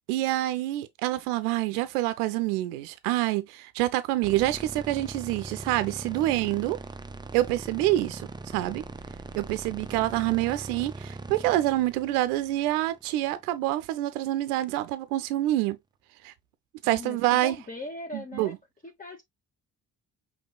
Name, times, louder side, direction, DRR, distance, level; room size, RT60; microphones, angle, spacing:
voice 1, 0.1-6.8 7.3-8.8 9.3-15.8 16.2-16.3 16.8-17.6 18.1-18.6, right 16 dB, 85° right, 0.6 m, -27 dB
sound 1, 4.2-13.4, right 3 dB, 10° right, 0.5 m, -41 dB
voice 2, 16.8-18.6 18.8-19.2, left 2 dB, 20° left, 1.1 m, -40 dB
5.3 x 3.3 x 2.3 m
hypercardioid pair, 45°, 43 cm